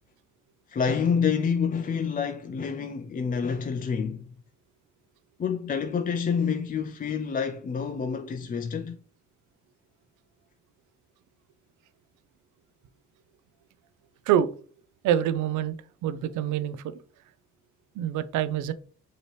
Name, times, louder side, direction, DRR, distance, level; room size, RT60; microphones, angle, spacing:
voice 1, 0.7-4.2 5.4-9.0, left 6 dB, 30° left, 0.4 m, -28 dB
voice 2, 15.0-15.7 16.0-16.8 18.0-18.7, right 10 dB, 80° right, 0.5 m, -25 dB
5.5 x 3.0 x 3.1 m
cardioid pair, 90°, 30 cm